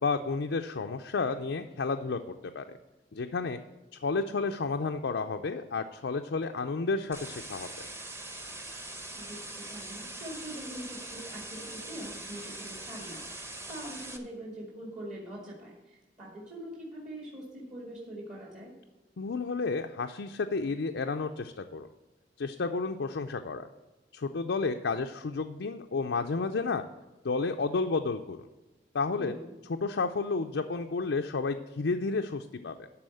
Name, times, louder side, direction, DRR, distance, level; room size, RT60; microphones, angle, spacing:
voice 1, 0.0-2.8 3.1-3.6 3.9-7.7 19.2-21.9 22.4-23.7 24.1-26.8 27.2-28.5 28.9-29.3 29.8-32.9, left 4 dB, 90° left, 5 dB, 0.5 m, -31 dB
wn looped, 7.1-14.2, right 2 dB, 15° right, 0.9 m, -42 dB
voice 2, 9.1-18.7 29.2-29.5, right 1 dB, 45° right, -3 dB, 2.1 m, -43 dB
12.0 x 4.2 x 7.7 m, 1.1 s
head